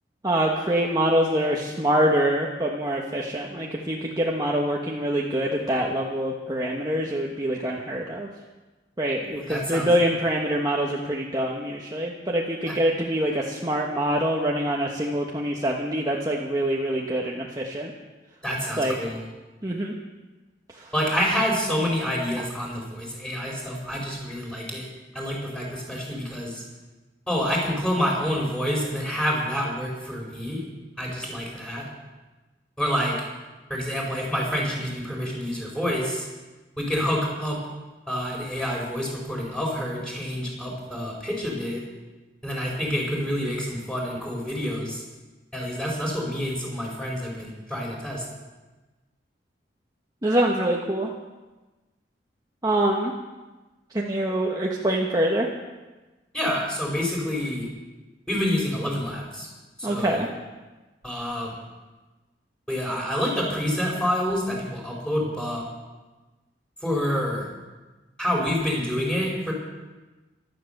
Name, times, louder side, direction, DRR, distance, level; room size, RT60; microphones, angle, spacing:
voice 1, 0.2-8.3 9.0-17.9 18.8-18.9 19.6-19.9 20.8-20.9 50.2-51.1 52.6-53.1 53.9-55.5 59.8-60.3, right 1 dB, 20° right, -2 dB, 1.3 m, -25 dB
voice 2, 9.3-9.9 12.7-12.8 18.4-19.2 20.9-24.9 25.1-26.6 27.3-30.6 31.0-31.8 32.8-33.2 33.7-36.3 36.8-37.6 38.1-41.8 42.4-45.0 45.5-48.2 56.3-57.7 58.3-59.5 59.8-60.2 61.0-61.5 62.7-65.6 66.8-67.5 68.2-69.5, equal, 5° left, -3 dB, 4.8 m, -27 dB
15.0 x 13.0 x 6.7 m, 1.2 s
head